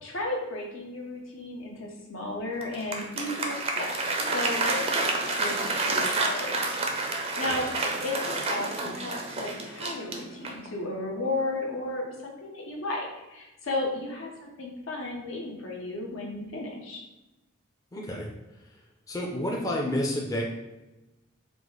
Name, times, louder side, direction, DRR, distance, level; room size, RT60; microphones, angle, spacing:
voice 1, 0.0-3.9 4.3-6.6 7.4-7.7 8.0-17.0, left 2 dB, 75° left, -1 dB, 0.9 m, -34 dB
Applause, 2.6-10.7, right 3 dB, 30° right, 0.5 m, -29 dB
voice 2, 17.9-18.3 19.1-20.4, left 1 dB, 15° left, -2 dB, 0.5 m, -29 dB
4.9 x 2.0 x 3.8 m, 1.0 s
head